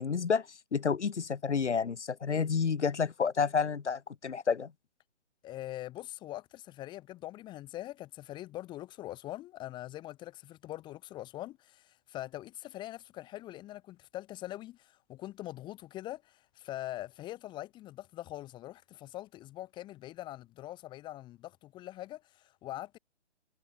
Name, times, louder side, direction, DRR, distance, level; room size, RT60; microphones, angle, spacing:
voice 1, 0.0-4.7, left 6 dB, 75° left, 2.3 m, -30 dB
voice 2, 5.4-23.0, left 15 dB, 15° left, 1.6 m, -43 dB
hypercardioid pair, 150°, 35 cm